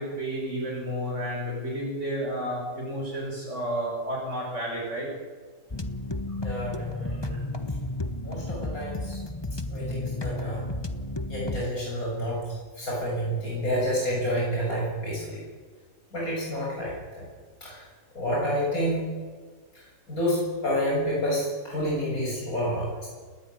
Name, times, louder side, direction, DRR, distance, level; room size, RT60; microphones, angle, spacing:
voice 1, 0.0-5.1 6.3-6.4 7.3-7.4, equal, 55° right, -4 dB, 7.2 m, -31 dB
sound 1, 5.7-11.6, left 2 dB, 20° left, 1.2 m, -33 dB
voice 2, 6.4-7.3 8.2-9.2 9.7-10.6 11.3-12.4 12.8-15.4 16.1-17.2 17.6-17.8 18.1-19.1 19.7-23.1, equal, 90° left, -4 dB, 8.1 m, -29 dB
28.5 x 20.0 x 9.8 m, 1.5 s
omnidirectional pair, 1.5 m